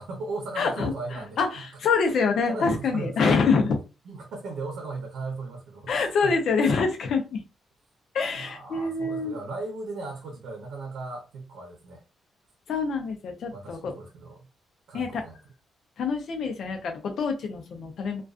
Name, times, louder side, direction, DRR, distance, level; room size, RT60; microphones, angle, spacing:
voice 1, 0.0-1.4 2.5-3.3 4.0-6.3 8.3-12.0 13.5-14.5 14.9-15.4, right 3 dB, 85° right, 0.7 m, -37 dB
voice 2, 0.6-3.8 5.9-7.4 8.1-9.4 12.7-13.9 14.9-15.2 16.0-18.2, left 4 dB, 65° left, 0.6 m, -26 dB
2.4 x 2.3 x 2.4 m
wide cardioid pair, 155°, 0 cm